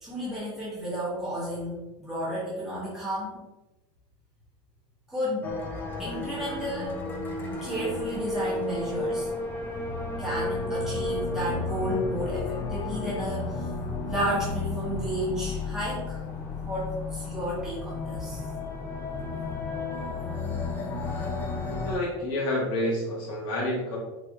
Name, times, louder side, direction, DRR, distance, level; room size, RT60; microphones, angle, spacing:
voice 1, 0.0-3.4 5.1-5.5 6.0-7.0 7.6-9.3 10.2-13.7 14.1-16.2 16.6-18.4, equal, 5° right, -9 dB, 0.9 m, -32 dB
sound 1, 5.4-22.0, left 3 dB, 15° left, 0.3 m, -32 dB
voice 2, 21.8-24.0, left 1 dB, 40° left, -5 dB, 0.8 m, -28 dB
4.3 x 2.6 x 2.3 m, 1.1 s
cardioid pair, 175°, 14 cm